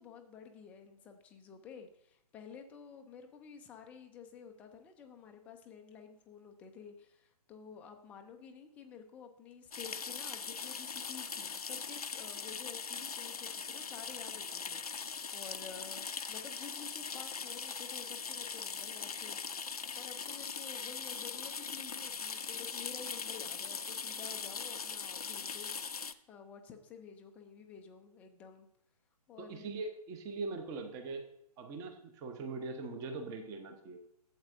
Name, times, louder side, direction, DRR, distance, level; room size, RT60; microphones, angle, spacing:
voice 1, 0.0-25.7 26.3-28.7 29.3-29.7, left 6 dB, 5° left, 5 dB, 0.4 m, -51 dB
sound 1, 9.7-26.1, left 5 dB, 70° left, 0.6 m, -41 dB
voice 2, 29.4-31.3 31.6-34.0, right 3 dB, 15° right, 6 dB, 0.8 m, -41 dB
11.5 x 7.9 x 2.6 m, 0.75 s
figure-of-eight pair, 130°, 20 cm